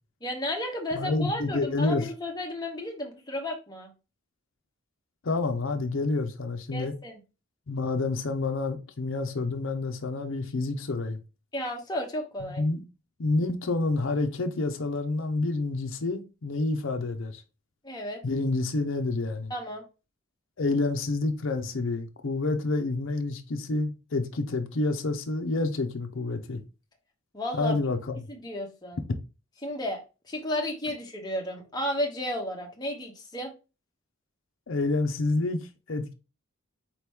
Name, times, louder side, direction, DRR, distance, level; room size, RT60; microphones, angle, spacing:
voice 1, 0.2-3.9 6.7-7.2 11.5-12.6 17.8-18.2 19.5-19.8 27.3-27.8 28.3-29.0 29.6-30.0 30.3-33.5, left 1 dB, 20° left, 0.8 m, -33 dB
voice 2, 0.9-2.1 5.2-6.9 7.7-11.2 12.4-12.8 13.2-17.4 18.2-19.5 20.6-26.6 27.5-28.2 34.7-36.1, left 3 dB, 60° left, 0.6 m, -28 dB
4.2 x 3.0 x 3.4 m
head